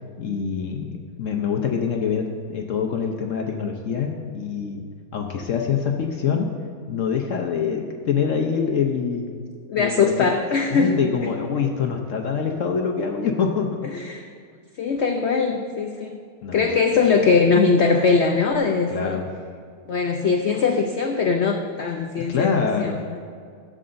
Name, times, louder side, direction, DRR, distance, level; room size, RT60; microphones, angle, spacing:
voice 1, 0.2-4.9 5.1-6.5 6.9-9.5 9.8-9.9 10.2-10.3 10.6-14.0 16.4-16.7 18.9-19.2 22.2-23.0, left 6 dB, 60° left, 2 dB, 0.9 m, -25 dB
voice 2, 9.7-10.9 11.2-11.3 13.9-14.3 14.8-16.2 16.5-19.2 19.9-23.2, left 5 dB, 85° left, 4 dB, 0.6 m, -21 dB
14.5 x 7.7 x 2.6 m, 2.2 s
omnidirectional pair, 1.8 m